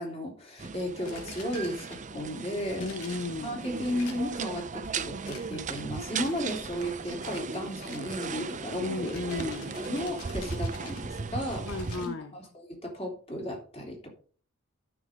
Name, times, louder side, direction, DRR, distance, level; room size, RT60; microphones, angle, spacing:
voice 1, 0.0-2.9 3.4-9.1 9.7-11.6 12.0-14.1, equal, 30° left, 3.4 m, -34 dB
sound 1, 0.6-12.1, right 4 dB, 35° right, 0.6 m, -37 dB
sound 2, 1.1-2.2 2.8-3.5 4.0-4.6 5.2-5.8 6.2-6.6 7.2-7.5 7.8-12.1, left 5 dB, 80° left, 2.4 m, -49 dB
voice 2, 2.8-3.6 8.8-9.8 11.6-12.3, left 3 dB, 60° left, 0.8 m, -34 dB
13.5 x 6.2 x 3.7 m
head